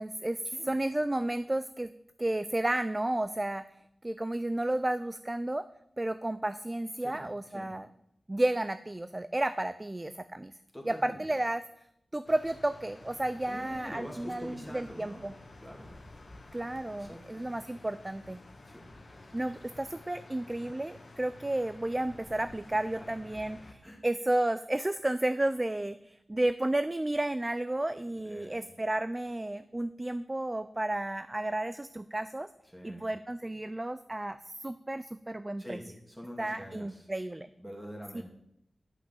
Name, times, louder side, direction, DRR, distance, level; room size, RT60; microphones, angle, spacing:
voice 1, 0.0-0.4 0.7-1.9 2.2-3.6 4.0-5.6 6.0-7.9 8.3-10.5 10.8-11.6 12.1-15.3 16.5-18.4 19.3-32.5 32.8-35.8 36.4-37.5 38.1-38.2, right 1 dB, 20° right, 13 dB, 0.4 m, -32 dB
voice 2, 10.7-11.2 13.5-15.3 15.6-15.9 16.9-17.5 18.7-18.9 19.1-19.3 22.9-23.0 23.8-24.0 28.2-28.6 32.7-33.1 35.6-37.0 37.6-38.2, equal, ahead, 0 dB, 2.7 m, -45 dB
sound 1, 12.2-23.7, left 2 dB, 45° left, 1.6 m, -51 dB
11.0 x 5.9 x 7.7 m, 0.77 s
wide cardioid pair, 120°, 0 cm